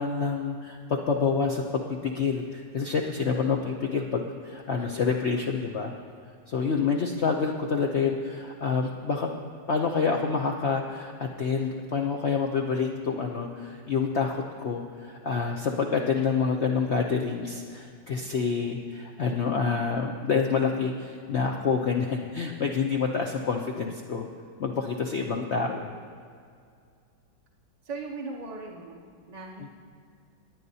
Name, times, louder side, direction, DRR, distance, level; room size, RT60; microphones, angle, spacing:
voice 1, 0.0-5.9 6.5-9.3 9.7-24.3 24.6-25.9 29.6-29.7, left 5 dB, 75° left, 1 dB, 0.6 m, -27 dB
voice 2, 27.8-29.7, right 3 dB, 45° right, -1 dB, 0.5 m, -38 dB
20.5 x 9.2 x 2.7 m, 2.3 s
omnidirectional pair, 2.0 m